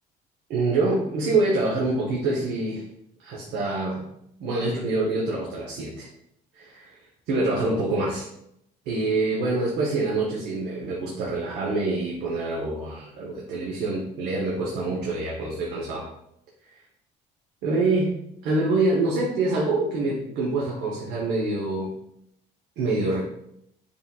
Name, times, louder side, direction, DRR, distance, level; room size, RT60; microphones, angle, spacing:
voice 1, 0.5-2.9 3.2-4.0 4.4-6.1 6.5-7.0 7.3-8.3 8.9-16.1 17.6-18.1 18.4-21.9 22.8-23.2, right 2 dB, 80° right, -3 dB, 0.9 m, -25 dB
5.1 x 3.7 x 2.3 m, 0.77 s
cardioid pair, 110°, 17 cm